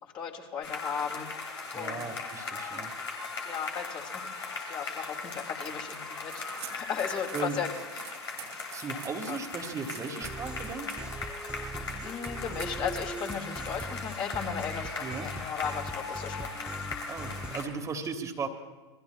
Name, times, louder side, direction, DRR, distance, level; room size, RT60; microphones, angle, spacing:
voice 1, 0.0-1.3 1.7-2.1 3.4-6.4 6.7-7.7 9.3-9.4 12.0-16.7, left 7 dB, 35° left, 0 dB, 2.6 m, -36 dB
sound 1, 0.6-17.6, left 4 dB, 80° left, 3.1 m, -39 dB
voice 2, 1.6-2.9 7.3-7.6 8.7-10.9 15.0-15.3 17.1-18.5, right 5 dB, 20° right, 3 dB, 1.6 m, -36 dB
sound 2, 6.3-14.3, right 11 dB, 70° right, 1.5 m, -48 dB
sound 3, 10.2-17.7, right 1 dB, 5° right, 0.8 m, -41 dB
28.0 x 21.0 x 2.3 m, 1.3 s
figure-of-eight pair, 95°, 15 cm